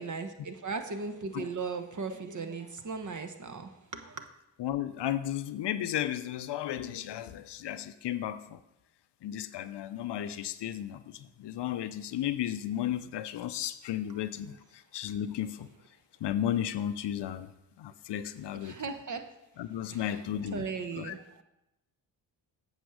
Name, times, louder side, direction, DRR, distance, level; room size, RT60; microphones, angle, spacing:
voice 1, 0.0-4.2 14.1-14.2 18.5-19.3 19.9-21.4, right 4 dB, 40° right, 7 dB, 1.1 m, -38 dB
voice 2, 4.6-8.6 9.2-15.7 16.2-17.5 17.8-18.7 19.6-20.7 21.0-21.1, left 11 dB, 60° left, 13 dB, 0.6 m, -34 dB
8.1 x 5.9 x 4.9 m, 0.88 s
supercardioid pair, 50°, 47 cm